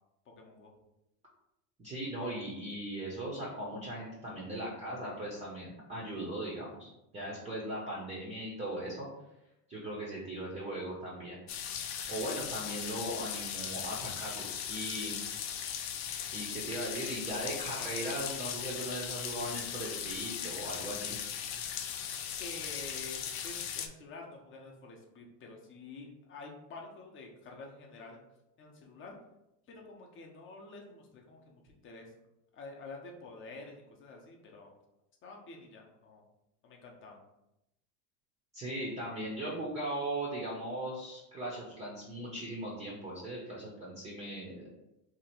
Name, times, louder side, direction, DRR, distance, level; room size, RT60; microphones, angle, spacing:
voice 1, 0.3-0.7 22.4-28.2 28.6-29.2 29.7-32.1 32.5-34.7 35.2-36.2 36.6-37.2, left 3 dB, 25° left, 1 dB, 0.7 m, -48 dB
voice 2, 1.8-9.1 9.7-11.4 12.1-15.2 16.3-21.1 38.5-44.6, right 1 dB, 15° right, -5 dB, 0.6 m, -38 dB
sound 1, 11.5-23.9, left 8 dB, 80° left, 0.6 m, -38 dB
2.9 x 2.5 x 4.2 m, 0.87 s
supercardioid pair, 135°, 47 cm